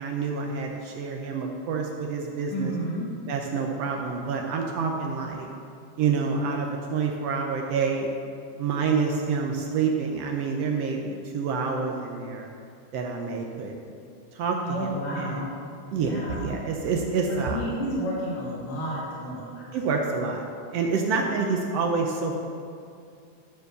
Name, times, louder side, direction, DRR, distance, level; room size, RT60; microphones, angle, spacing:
voice 1, 0.0-2.7 3.3-5.5 6.0-8.1 8.6-12.5 12.9-13.7 14.3-14.9 15.2-15.5 15.9-17.6 19.7-20.4 20.7-22.4, right 5 dB, 75° right, 1 dB, 1.4 m, -27 dB
voice 2, 2.5-3.1 14.6-15.5 15.9-16.5 17.3-19.6, equal, 75° left, -7 dB, 3.3 m, -31 dB
12.0 x 4.7 x 6.6 m, 2.5 s
omnidirectional pair, 3.7 m